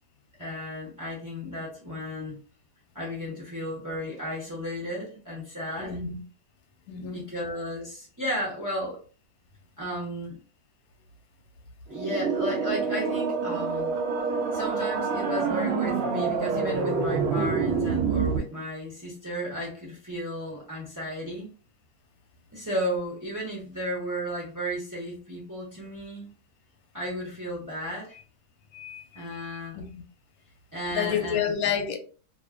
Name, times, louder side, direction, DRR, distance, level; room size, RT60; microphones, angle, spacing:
voice 1, 0.4-2.4 2.9-6.0 6.9-9.0 9.8-10.4 11.9-13.9 14.5-21.5 22.5-26.3 26.9-28.2 29.1-29.8 30.7-31.5, equal, 25° right, 0.3 m, -34 dB
voice 2, 5.8-6.2 6.9-7.3 28.7-29.1 29.3-29.9 30.9-32.0, left 8 dB, 70° left, 0.9 m, -30 dB
sound 1, 11.9-18.4, right 5 dB, 80° right, 0.6 m, -27 dB
2.6 x 2.4 x 2.4 m
omnidirectional pair, 1.8 m